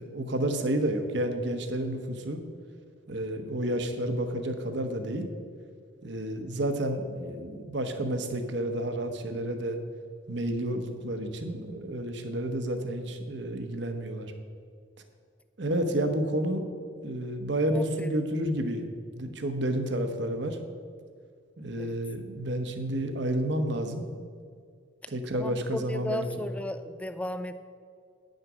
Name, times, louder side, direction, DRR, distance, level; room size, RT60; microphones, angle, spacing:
voice 1, 0.0-2.4 3.1-5.3 6.0-9.8 10.3-14.3 15.6-16.6 17.0-18.8 19.2-20.6 21.6-24.1 25.1-26.3, right 1 dB, 60° right, 7 dB, 0.9 m, -30 dB
voice 2, 17.7-18.1 21.8-22.0 25.3-27.5, left 1 dB, 5° left, 11 dB, 0.3 m, -35 dB
9.6 x 6.5 x 6.0 m, 2.1 s
head